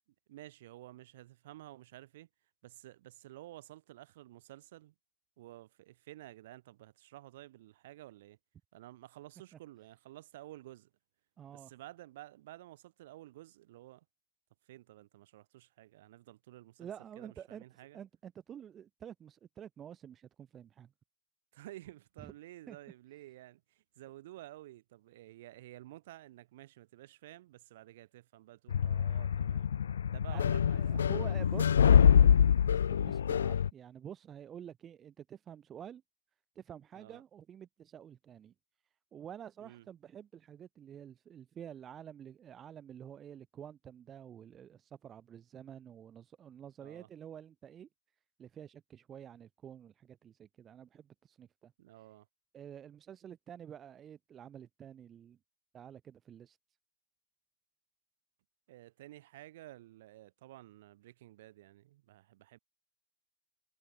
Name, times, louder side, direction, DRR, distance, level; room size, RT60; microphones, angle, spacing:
voice 1, 0.3-2.3 2.6-4.9 5.4-8.4 8.7-10.9 11.5-14.0 14.7-16.9 17.2-18.0 21.5-29.7 30.1-31.6 36.9-37.2 39.6-39.9 46.8-47.1 51.8-52.3 58.7-62.6, right 15 dB, 55° right, 4.2 m, -52 dB
voice 2, 11.4-11.7 16.8-17.6 17.9-20.9 22.2-22.3 22.7-22.8 30.3-30.4 30.7-36.0 36.5-38.5 39.1-47.9 48.4-51.7 52.5-55.4 55.7-56.6, right 9 dB, 20° right, 1.2 m, -49 dB
sound 1, 28.7-33.7, left 8 dB, 90° left, 0.6 m, -25 dB
hypercardioid pair, 150°, 0 cm